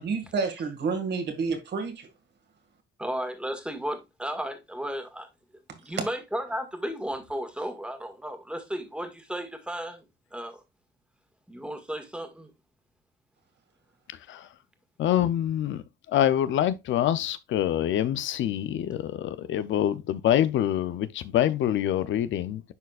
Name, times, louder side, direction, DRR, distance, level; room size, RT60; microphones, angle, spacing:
voice 1, 0.0-2.1 6.0-6.1, right 4 dB, 60° right, 1.9 m, -29 dB
voice 2, 3.0-5.3 5.8-10.1 10.3-10.6 11.5-12.5, equal, 5° right, 1.7 m, -34 dB
voice 3, 15.0-22.7, left 11 dB, 70° left, 0.6 m, -26 dB
10.5 x 4.2 x 2.4 m
cardioid pair, 90°, 20 cm